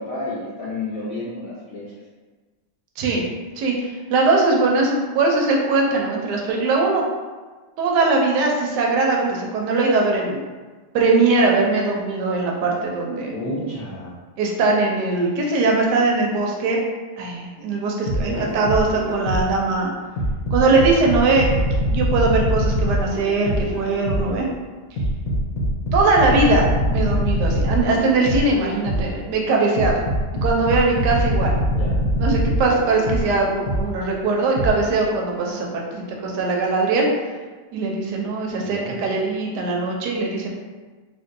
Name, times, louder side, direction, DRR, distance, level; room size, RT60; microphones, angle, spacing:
voice 1, 0.0-2.0 13.3-14.1 18.2-18.5 31.6-32.1 38.6-38.9, left 1 dB, 45° left, -9 dB, 0.9 m, -31 dB
voice 2, 3.6-7.0 7.8-10.4 10.9-13.4 14.4-16.8 17.2-19.9 20.5-21.5 21.9-24.5 25.9-29.9 30.4-31.5 32.2-37.1 37.7-40.5, right 3 dB, 80° right, -1 dB, 1.2 m, -20 dB
sound 1, 18.1-19.6 20.2-24.4 25.0-29.2 29.8-34.0 34.6-34.7, equal, 65° left, 1.1 m, -23 dB
3.3 x 2.5 x 2.6 m, 1.3 s
omnidirectional pair, 1.8 m